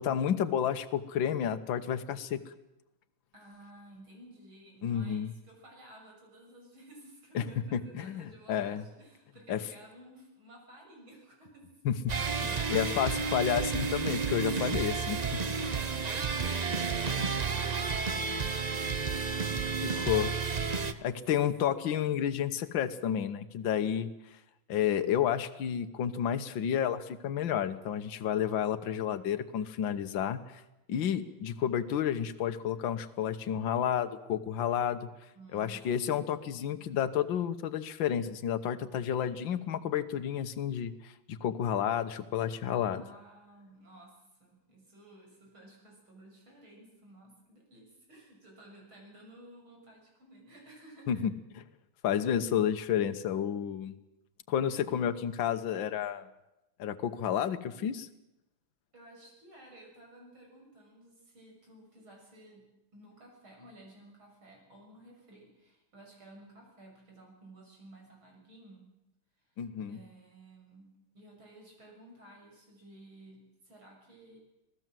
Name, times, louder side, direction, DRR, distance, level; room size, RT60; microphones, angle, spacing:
voice 1, 0.0-2.4 4.8-5.3 7.4-7.5 7.7-8.8 9.5-9.6 11.9-12.1 12.4-15.2 17.5-17.6 19.8-20.3 21.0-24.1 24.7-30.6 30.9-35.1 35.5-43.0 51.1-51.3 52.0-54.0 54.5-56.3 56.8-58.1 69.6-70.0, left 9 dB, 70° left, 10 dB, 1.8 m, -31 dB
voice 2, 3.3-11.7 20.9-21.2 35.3-36.9 42.9-51.2 58.9-62.7 62.9-68.9 69.4-69.5 69.9-74.4, right 1 dB, 85° right, 0 dB, 7.8 m, -55 dB
sound 1, 12.1-20.9, right 5 dB, 50° right, 0.5 m, -31 dB
26.0 x 18.0 x 7.7 m, 0.92 s
omnidirectional pair, 2.2 m